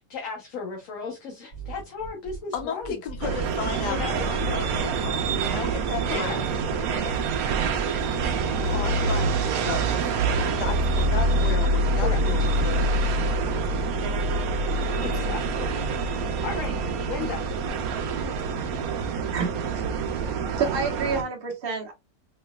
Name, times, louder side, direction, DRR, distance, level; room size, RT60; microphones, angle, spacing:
voice 1, 0.0-3.0 3.9-4.2 6.1-6.4 6.9-7.0 12.0-12.5 15.0-15.7 16.4-16.7 17.1-17.5, left 5 dB, 55° left, 1.1 m, -35 dB
sound 1, 1.5-13.1, right 5 dB, 40° left, 2.3 m, -41 dB
voice 2, 2.5-6.7 7.0-7.3 8.1-8.4 8.6-10.2 10.6-13.5, left 7 dB, 75° left, 1.3 m, -35 dB
sound 2, 3.2-21.2, right 3 dB, 65° right, 0.9 m, -26 dB
voice 3, 19.3-19.8 20.6-21.9, right 5 dB, 40° right, 1.0 m, -28 dB
3.8 x 3.2 x 2.2 m
omnidirectional pair, 1.9 m